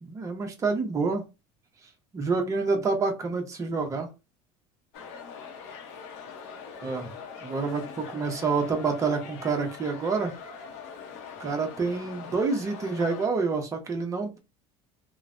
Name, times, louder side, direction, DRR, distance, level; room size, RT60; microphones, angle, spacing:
voice 1, 0.0-1.3 2.1-4.1 6.8-7.1 7.4-10.3 11.4-14.4, right 4 dB, 20° right, 3 dB, 0.7 m, -28 dB
sound 1, 4.9-13.3, left 5 dB, 80° left, 0.8 m, -42 dB
3.1 x 2.1 x 2.5 m, 0.27 s
cardioid pair, 140°, 14 cm